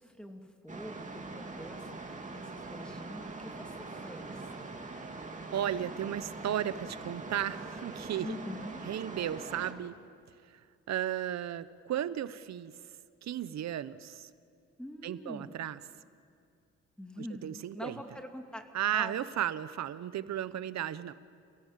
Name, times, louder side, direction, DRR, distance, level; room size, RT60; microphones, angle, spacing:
voice 1, 0.0-4.3 8.2-8.8 14.8-15.6 17.0-18.6 18.9-19.1, left 1 dB, 5° left, 4 dB, 2.7 m, -44 dB
sound 1, 0.7-9.7, right 3 dB, 25° right, 2.8 m, -43 dB
voice 2, 5.5-8.3 8.8-10.0 10.5-12.9 13.2-14.3 15.0-15.8 17.2-18.0 18.7-21.1, right 11 dB, 65° right, 15 dB, 1.0 m, -35 dB
29.0 x 17.5 x 7.5 m, 2.4 s
cardioid pair, 90°, 30 cm